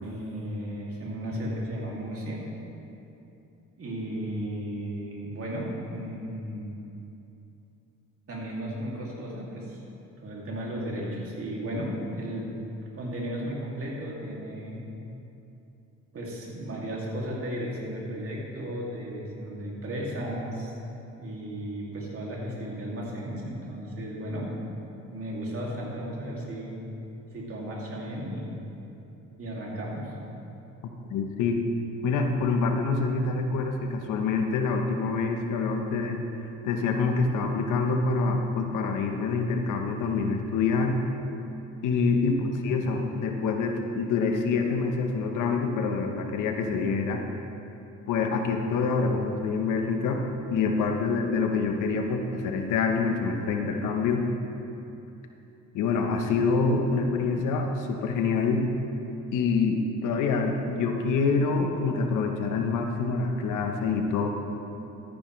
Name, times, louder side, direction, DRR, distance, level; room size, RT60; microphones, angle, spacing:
voice 1, 0.0-2.5 3.8-6.8 8.3-9.8 10.2-12.6 12.9-14.8 16.1-20.8 21.2-24.5 25.1-26.8 27.3-28.6 29.4-30.1 42.0-42.3, equal, 50° right, -3 dB, 2.6 m, -34 dB
voice 2, 31.1-31.6 32.0-41.0 41.8-47.2 48.1-50.2 50.5-54.2 55.7-58.7 59.3-64.3, left 4 dB, 85° left, 4 dB, 1.0 m, -26 dB
13.5 x 10.0 x 3.2 m, 2.9 s
cardioid pair, 90°, 30 cm